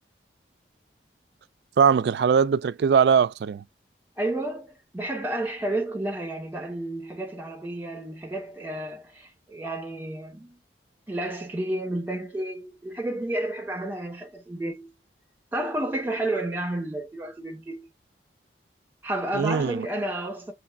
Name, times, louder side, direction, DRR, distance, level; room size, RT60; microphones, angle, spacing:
voice 1, 1.8-3.6 19.3-19.9, right 6 dB, 70° right, 0.3 m, -21 dB
voice 2, 4.2-10.6 11.1-14.9 15.5-17.9 19.0-20.5, right 1 dB, 10° right, 1.6 m, -31 dB
7.0 x 3.2 x 2.2 m
head